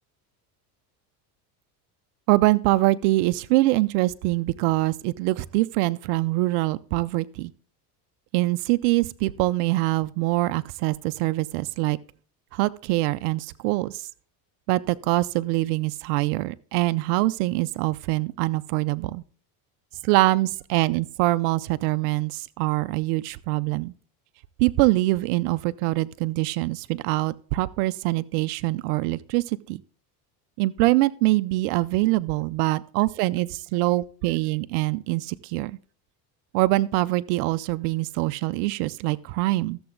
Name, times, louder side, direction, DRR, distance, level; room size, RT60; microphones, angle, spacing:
voice 1, 2.3-7.5 8.3-12.0 12.5-14.1 14.7-19.2 20.0-23.9 24.6-29.8 30.6-35.8 36.5-39.8, right 19 dB, 75° right, 0.6 m, -24 dB
13.5 x 7.0 x 3.8 m
supercardioid pair, 110°, 47 cm